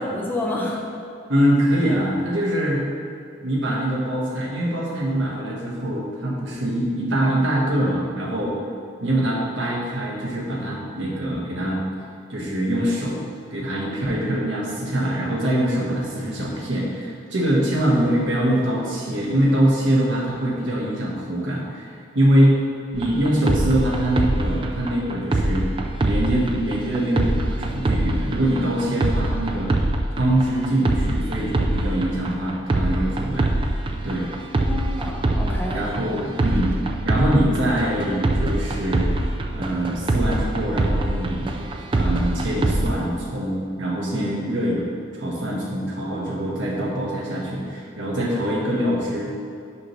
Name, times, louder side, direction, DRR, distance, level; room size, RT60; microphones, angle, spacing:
voice 1, 0.1-0.8 34.6-35.8 44.2-44.4, left 1 dB, 10° left, -2 dB, 0.6 m, -29 dB
voice 2, 1.3-2.8 3.4-8.6 9.0-11.8 12.3-13.2 13.5-21.9 22.1-22.6 22.9-25.7 26.0-29.7 30.2-33.5 34.0-34.3 35.7-36.7 37.0-39.1 39.5-41.5 41.9-44.8 45.1-49.3, right 1 dB, 75° right, -4 dB, 1.3 m, -23 dB
sound 1, 22.9-42.9, right 2 dB, 25° right, 0.3 m, -24 dB
6.2 x 5.9 x 3.1 m, 2.5 s
head